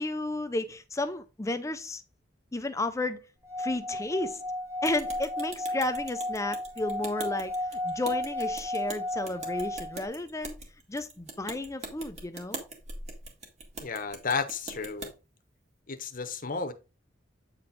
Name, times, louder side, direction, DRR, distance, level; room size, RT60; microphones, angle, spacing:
voice 1, 0.0-2.0 2.5-3.3 3.6-4.4 4.8-10.6 10.9-12.6, left 2 dB, 15° left, 0.5 m, -32 dB
Singing / Glass, 3.5-10.1, left 1 dB, 15° right, 1.6 m, -34 dB
sound 1, 4.8-15.1, right 3 dB, 35° right, 1.9 m, -43 dB
voice 2, 13.8-15.1 15.9-16.7, left 5 dB, 45° left, 0.9 m, -32 dB
8.8 x 4.3 x 4.0 m
head